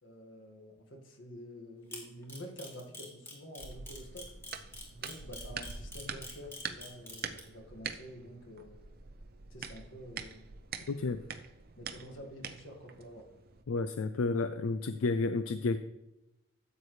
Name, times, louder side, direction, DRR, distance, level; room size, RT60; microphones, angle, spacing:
voice 1, 0.0-4.3 4.9-8.7 9.5-10.5 11.8-13.2, equal, 65° left, 2 dB, 1.8 m, -48 dB
Camera, 1.9-7.4, left 1 dB, 10° left, 2.2 m, -45 dB
sound 1, 3.6-13.6, right 6 dB, 50° right, 0.6 m, -45 dB
voice 2, 10.9-11.2 13.7-15.8, left 3 dB, 80° left, 11 dB, 0.4 m, -31 dB
14.0 x 8.4 x 3.2 m, 0.95 s
head